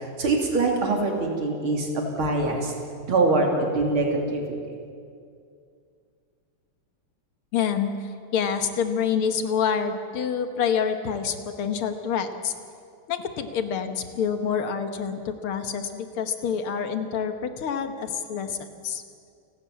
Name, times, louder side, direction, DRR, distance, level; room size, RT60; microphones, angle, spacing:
voice 1, 0.0-2.7 3.1-4.8, right 3 dB, 70° right, 1 dB, 3.7 m, -24 dB
voice 2, 7.5-12.5 13.1-19.0, left 7 dB, 75° left, 8 dB, 2.1 m, -27 dB
28.5 x 13.0 x 8.5 m, 2.3 s
omnidirectional pair, 2.4 m